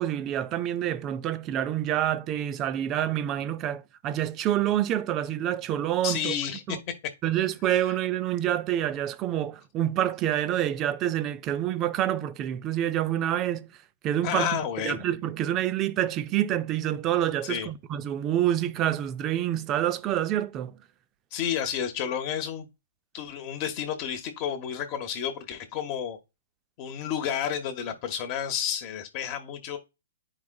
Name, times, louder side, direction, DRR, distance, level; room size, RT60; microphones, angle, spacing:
voice 1, 0.0-6.3 6.7-6.8 7.2-13.7 14.0-20.8, right 11 dB, 20° right, 0.3 m, -27 dB
voice 2, 6.0-6.9 14.2-15.0 17.4-17.7 21.3-22.7 23.1-26.2 26.8-29.8, left 9 dB, 30° left, 0.7 m, -31 dB
9.4 x 4.8 x 2.2 m
hypercardioid pair, 160°, 0 cm